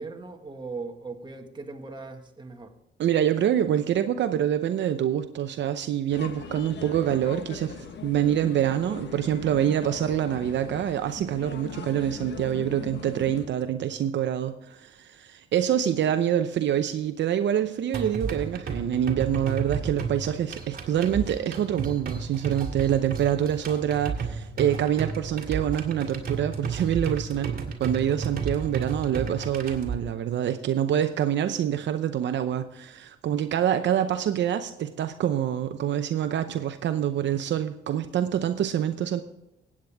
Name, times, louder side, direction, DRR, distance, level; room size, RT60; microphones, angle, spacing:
voice 1, 0.0-2.7, right 3 dB, 25° right, 1.6 m, -39 dB
voice 2, 3.0-39.2, right 10 dB, 65° right, 0.7 m, -26 dB
sound 1, 6.1-13.5, left 6 dB, 60° left, 1.4 m, -40 dB
sound 2, 17.9-29.9, right 5 dB, 45° right, 2.3 m, -33 dB
16.0 x 8.8 x 3.5 m
cardioid pair, 90°, 20 cm